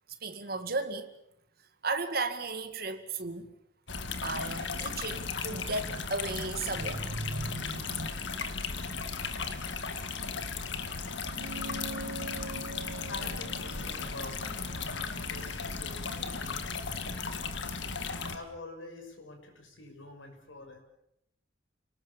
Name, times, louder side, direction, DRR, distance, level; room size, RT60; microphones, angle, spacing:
voice 1, 0.1-1.1 1.8-3.5 4.2-8.1, right 3 dB, 50° right, 7 dB, 2.2 m, -35 dB
sound 1, 3.9-18.4, left 5 dB, 65° left, 2.0 m, -36 dB
sound 2, 11.3-16.1, right 2 dB, 85° right, 1.3 m, -44 dB
voice 2, 13.1-17.6 18.0-20.8, left 2 dB, 90° left, 4 dB, 6.4 m, -47 dB
30.0 x 19.5 x 7.3 m, 0.78 s
head